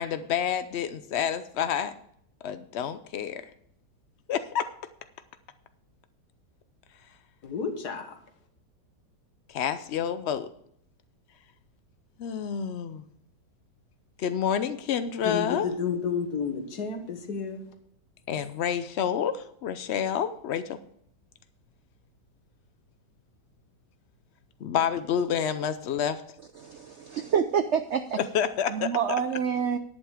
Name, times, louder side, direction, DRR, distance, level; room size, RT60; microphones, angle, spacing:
voice 1, 0.0-1.9 2.4-3.4 4.3-4.7 9.5-10.5 12.2-13.0 14.2-15.7 18.3-20.8 24.6-26.2 28.2-28.9, left 8 dB, 85° left, 11 dB, 0.5 m, -28 dB
voice 2, 7.4-8.2 15.2-17.7, left 6 dB, 65° left, 6 dB, 1.8 m, -31 dB
voice 3, 26.6-28.2 28.7-29.8, right 7 dB, 75° right, 10 dB, 0.6 m, -27 dB
11.0 x 8.8 x 4.9 m, 0.68 s
omnidirectional pair, 1.9 m